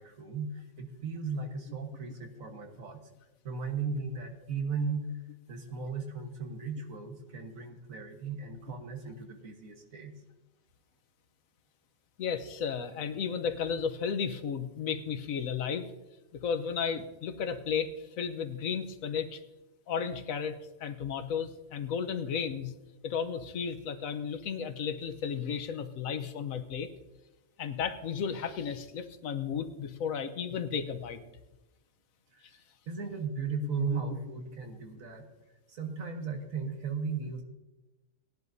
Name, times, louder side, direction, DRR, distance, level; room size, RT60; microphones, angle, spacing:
voice 1, 0.0-3.0 3.4-5.1 5.5-10.1 32.3-32.5 32.9-35.3 35.7-37.4, right 5 dB, 85° right, 4 dB, 1.7 m, -36 dB
voice 2, 12.2-15.9 16.4-19.4 19.9-22.7 23.0-26.9 27.6-31.2 33.9-34.0, left 7 dB, 80° left, 9 dB, 1.3 m, -34 dB
18.5 x 10.5 x 2.7 m, 1.0 s
omnidirectional pair, 1.4 m